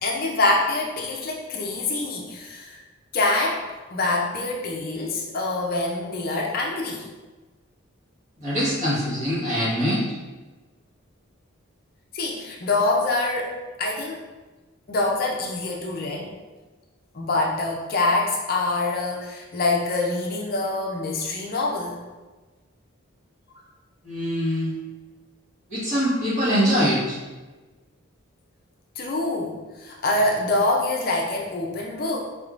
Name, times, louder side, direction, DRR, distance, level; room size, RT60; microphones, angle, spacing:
voice 1, 0.0-2.8 3.1-3.6 3.9-7.0 12.1-13.5 13.8-14.2 14.9-16.3 17.1-22.0 29.0-32.2, left 2 dB, 45° left, -1 dB, 0.5 m, -25 dB
voice 2, 8.4-10.0 24.0-24.8 25.7-27.2, equal, 35° right, -8 dB, 1.4 m, -23 dB
4.4 x 3.5 x 2.5 m, 1.2 s
head